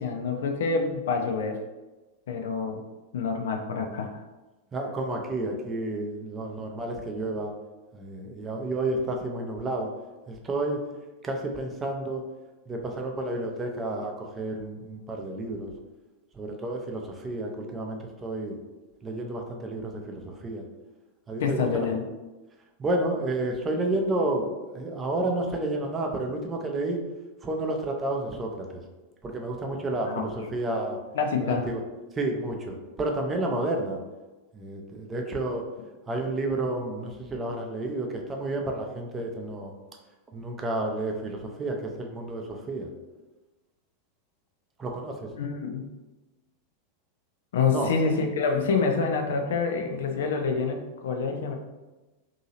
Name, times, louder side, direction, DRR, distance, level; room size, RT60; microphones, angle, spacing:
voice 1, 0.0-1.6 2.3-2.8 3.1-4.2 21.4-22.0 30.1-30.5 31.1-31.7 45.4-45.9 47.5-51.5, left 5 dB, 60° left, 4 dB, 0.4 m, -27 dB
voice 2, 4.7-7.5 7.9-9.9 10.3-10.8 11.2-12.2 12.7-15.7 16.3-18.6 19.0-20.6 21.3-21.9 22.8-27.0 27.4-28.8 29.2-31.0 31.4-31.8 32.2-34.0 34.5-35.6 36.1-39.7 40.3-42.9 44.8-45.3 47.7-47.9, right 2 dB, 20° right, 2 dB, 0.5 m, -30 dB
2.8 x 2.7 x 2.8 m, 1.1 s
figure-of-eight pair, 90°, 0 cm